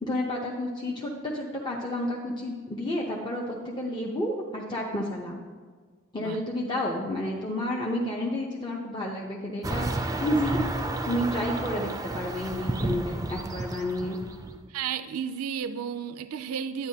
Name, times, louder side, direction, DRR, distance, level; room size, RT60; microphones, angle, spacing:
voice 1, 0.0-5.4 6.1-9.9 10.2-10.6 11.0-14.2, left 1 dB, 20° left, -3 dB, 0.7 m, -30 dB
sound 1, 9.6-14.7, right 2 dB, 15° right, 0.4 m, -31 dB
voice 2, 14.7-16.9, right 7 dB, 90° right, 11 dB, 0.4 m, -33 dB
10.0 x 9.7 x 2.8 m, 1.5 s
head